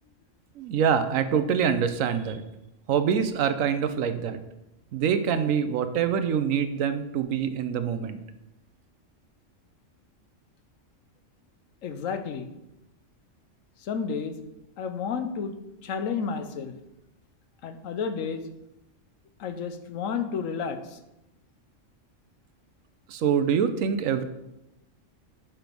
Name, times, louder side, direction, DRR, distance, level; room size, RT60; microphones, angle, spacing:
voice 1, 0.6-2.4 2.9-4.4 4.9-8.2 23.1-24.2, right 7 dB, 90° right, 10 dB, 1.1 m, -25 dB
voice 2, 11.8-12.5 13.8-14.4 14.8-15.5 15.8-16.7 17.6-18.5 19.4-21.0, left 6 dB, 85° left, 8 dB, 1.1 m, -31 dB
6.2 x 5.2 x 6.0 m, 0.91 s
omnidirectional pair, 1.3 m